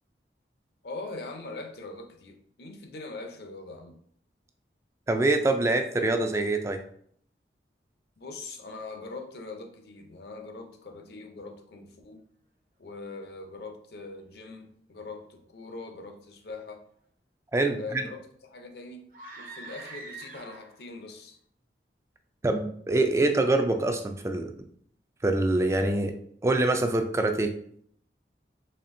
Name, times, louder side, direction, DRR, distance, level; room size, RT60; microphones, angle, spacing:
voice 1, 0.8-4.0 8.2-12.2 12.8-16.8 17.8-18.2 18.5-19.1 19.4-21.4, left 3 dB, 65° left, 5 dB, 0.6 m, -42 dB
voice 2, 5.1-6.8 17.5-18.0 22.4-24.5 25.2-26.1 26.4-27.5, right 2 dB, 15° right, 6 dB, 0.3 m, -25 dB
sound 1, 19.1-20.9, right 3 dB, 50° right, 0.7 m, -43 dB
4.2 x 3.2 x 2.6 m, 0.63 s
head